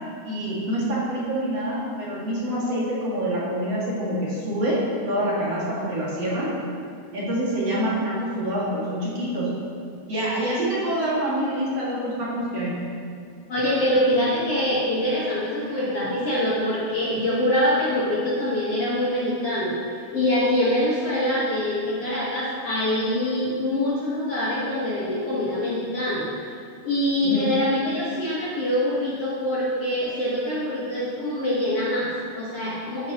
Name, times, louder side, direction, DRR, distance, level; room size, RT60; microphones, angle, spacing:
voice 1, 0.2-4.8 5.1-6.5 7.1-9.5 10.1-12.7 27.2-27.5, right 1 dB, 45° right, -8 dB, 2.8 m, -26 dB
voice 2, 13.5-26.3 26.8-33.1, left 1 dB, 55° left, -8 dB, 1.9 m, -24 dB
13.5 x 9.6 x 3.0 m, 2.3 s
omnidirectional pair, 4.3 m